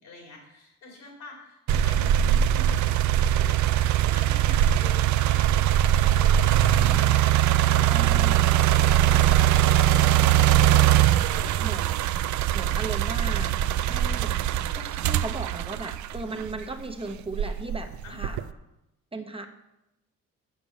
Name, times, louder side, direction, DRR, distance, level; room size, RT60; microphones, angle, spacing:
voice 1, 0.0-7.1 7.4-8.0 8.8-11.6 18.0-18.5, left 2 dB, 85° left, -2 dB, 4.1 m, -46 dB
sound 1, 1.7-16.7 17.3-18.5, right 11 dB, 70° right, 0.5 m, -21 dB
voice 2, 7.9-8.5 11.6-18.4 19.1-19.5, right 2 dB, 20° right, 5 dB, 0.8 m, -37 dB
7.4 x 5.9 x 7.1 m, 0.91 s
cardioid pair, 90°, 30 cm